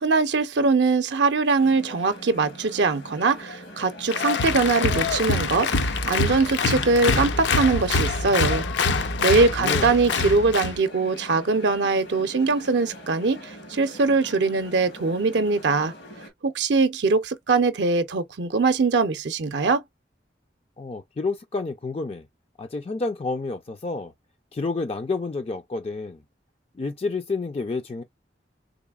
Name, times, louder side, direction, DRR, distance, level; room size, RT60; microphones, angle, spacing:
voice 1, 0.0-8.6 9.2-15.9 16.4-19.8, right 4 dB, 65° right, 0.5 m, -22 dB
sound 1, 1.6-16.3, equal, 90° left, 2.5 m, -43 dB
Applause, 4.1-10.8, left 4 dB, 70° left, 0.6 m, -25 dB
voice 2, 9.6-10.3 20.8-22.2 22.6-24.1 24.5-26.2 26.8-28.0, left 3 dB, 30° left, 0.4 m, -30 dB
3.9 x 3.4 x 2.3 m
head